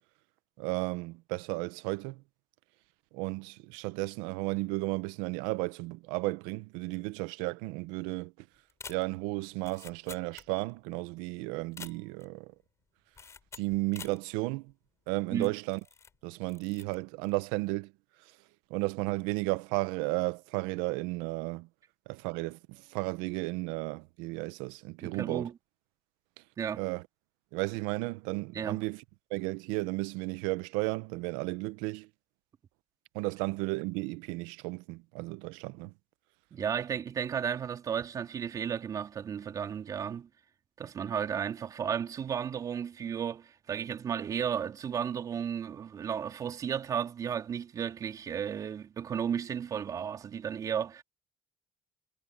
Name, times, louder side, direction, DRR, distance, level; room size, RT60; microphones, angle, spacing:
voice 1, 0.6-2.2 3.1-8.3 8.9-12.5 13.6-14.7 15.1-15.8 16.2-17.9 18.7-21.7 22.1-25.5 26.7-27.0 27.5-29.0 29.3-32.1 33.1-35.9, right 23 dB, 90° right, 0.7 m, -34 dB
sound 1, 8.7-10.9 11.1-11.2 11.6-12.4 13.1-14.2 14.7-14.8 15.4-16.2 16.4-17.0 17.3-17.6, left 6 dB, 40° left, 7.7 m, -48 dB
voice 2, 25.0-25.5 26.6-26.8 28.5-28.8 36.5-40.3 40.8-51.0, right 8 dB, 50° right, 3.5 m, -34 dB
supercardioid pair, 75°, 8 cm